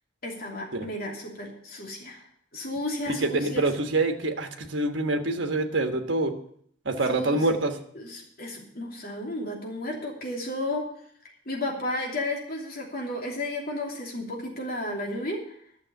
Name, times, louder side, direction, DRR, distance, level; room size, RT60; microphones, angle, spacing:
voice 1, 0.2-2.2 2.5-3.7 7.1-7.4 7.9-10.8 11.5-15.4, left 1 dB, 50° left, 0 dB, 2.9 m, -33 dB
voice 2, 3.1-6.3 6.8-7.7, right 2 dB, 65° right, 5 dB, 1.4 m, -26 dB
12.0 x 7.0 x 8.2 m, 0.65 s
head